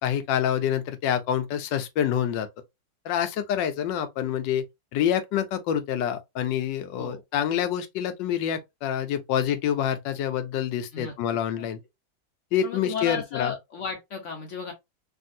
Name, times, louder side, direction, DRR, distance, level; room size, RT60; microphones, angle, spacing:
voice 1, 0.0-2.5 3.0-4.6 4.9-11.8 12.5-13.5, left 9 dB, 85° left, 1.3 m, -27 dB
voice 2, 10.9-11.7 12.6-14.7, left 6 dB, 55° left, 0.8 m, -34 dB
3.4 x 2.6 x 2.5 m
omnidirectional pair, 1.9 m